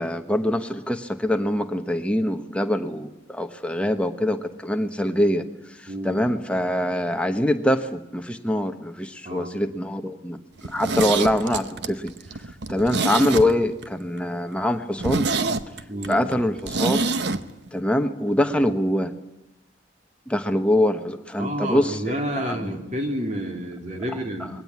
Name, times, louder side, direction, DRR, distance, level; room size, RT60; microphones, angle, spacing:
voice 1, 0.0-5.5 6.0-12.1 12.7-15.3 16.1-17.1 17.7-19.1 20.3-22.0 22.4-22.8, left 1 dB, 5° left, 6 dB, 1.1 m, -24 dB
voice 2, 5.9-6.2 9.2-9.7 15.9-16.3 18.6-18.7 21.4-24.5, right 1 dB, 40° right, 3 dB, 3.0 m, -30 dB
Zipper (clothing), 10.6-13.9 14.2-14.3 14.6-14.7 15.0-17.4 17.7-17.8, right 3 dB, 60° right, 0.9 m, -26 dB
21.0 x 17.0 x 9.5 m, 0.96 s
head